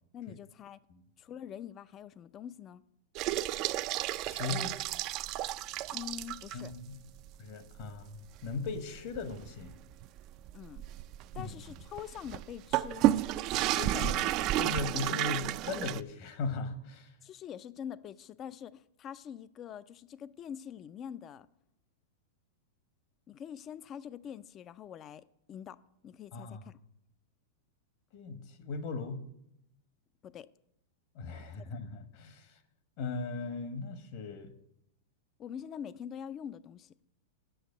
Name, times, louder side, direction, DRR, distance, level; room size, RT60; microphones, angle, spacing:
voice 1, 0.1-0.8 1.2-2.8 5.9-6.7 10.5-10.9 11.3-13.1 17.2-21.5 23.3-26.8 30.2-30.5 31.6-31.9 35.4-36.9, left 9 dB, 30° left, 0.4 m, -45 dB
sound 1, 3.2-6.7 7.2-7.3 7.7-7.8 8.4-16.0, right 14 dB, 45° right, 0.3 m, -32 dB
voice 2, 4.2-4.8 6.5-7.0 7.4-9.7 11.3-11.6 13.7-17.1 26.3-26.6 28.1-29.2 31.1-32.6 33.0-34.5, left 4 dB, 55° left, 1.3 m, -38 dB
7.9 x 6.4 x 8.1 m
hypercardioid pair, 120°, 0 cm